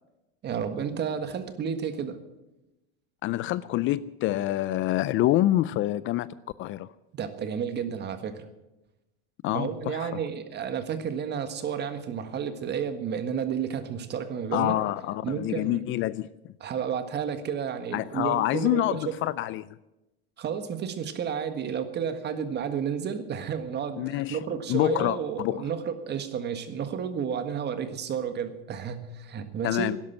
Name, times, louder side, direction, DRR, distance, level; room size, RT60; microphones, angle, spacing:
voice 1, 0.4-2.2 7.1-8.5 9.5-14.7 15.2-15.8 16.6-19.1 20.4-29.9, right 7 dB, 35° right, 10 dB, 1.7 m, -31 dB
voice 2, 3.2-6.3 6.6-6.9 9.4-10.2 14.5-16.3 17.9-19.7 24.0-24.4 24.7-25.7 29.6-30.0, left 15 dB, 40° left, 18 dB, 0.5 m, -26 dB
12.5 x 10.5 x 9.1 m, 0.97 s
supercardioid pair, 125°, 31 cm